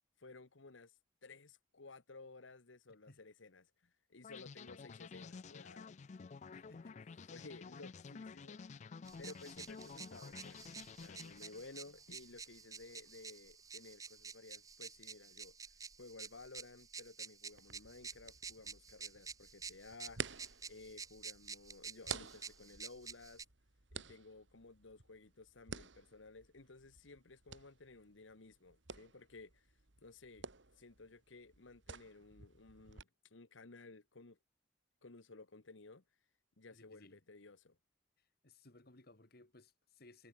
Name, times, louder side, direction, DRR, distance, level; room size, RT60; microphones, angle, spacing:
voice 1, 0.2-5.9 7.3-8.6 9.2-10.7 11.0-23.4 23.9-29.7 30.0-30.5 30.7-34.4 35.0-36.0 36.6-37.8, left 3 dB, 85° left, 1.3 m, -56 dB
sound 1, 4.2-11.9, left 5 dB, 40° left, 0.4 m, -51 dB
voice 2, 6.5-7.3 36.7-37.2 38.2-40.3, left 2 dB, 55° left, 2.4 m, -62 dB
sound 2, 9.1-23.4, right 5 dB, 20° right, 0.7 m, -51 dB
sound 3, 17.5-33.0, right 6 dB, 75° right, 2.5 m, -51 dB
head